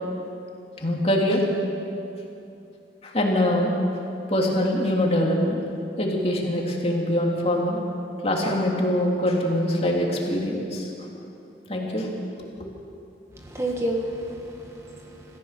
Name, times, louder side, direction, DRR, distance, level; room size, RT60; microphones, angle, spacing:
voice 1, 0.8-1.4 3.0-3.7 4.3-5.6 6.0-7.8 8.2-10.9 11.7-12.1, left 1 dB, 35° left, -1 dB, 3.2 m, -23 dB
voice 2, 13.4-15.4, right 1 dB, 15° right, 0 dB, 1.5 m, -30 dB
27.5 x 15.0 x 6.8 m, 2.8 s
head